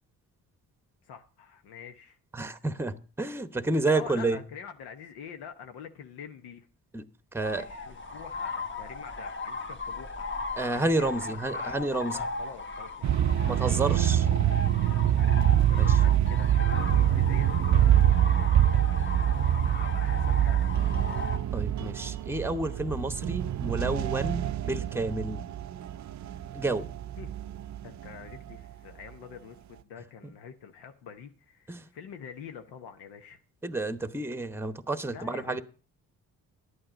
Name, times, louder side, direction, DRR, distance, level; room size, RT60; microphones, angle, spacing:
voice 1, 1.0-2.2 3.9-6.7 7.5-10.3 10.7-11.8 12.1-13.6 15.7-18.0 19.3-20.7 27.2-27.3 27.8-33.4 35.1-35.6, left 7 dB, 85° left, 7 dB, 0.9 m, -46 dB
voice 2, 2.3-4.4 6.9-7.0 7.3-7.6 10.5-12.2 13.4-14.3 15.8-16.0 21.5-25.4 26.5-26.9 30.2-30.3 31.7-31.8 33.6-35.6, right 2 dB, 5° right, 13 dB, 0.9 m, -30 dB
sound 1, 7.4-21.4, left 3 dB, 30° left, 1.4 m, -37 dB
sound 2, 13.0-28.5, right 11 dB, 50° right, 0.5 m, -25 dB
11.0 x 8.8 x 5.1 m, 0.39 s
supercardioid pair, 55°, 38 cm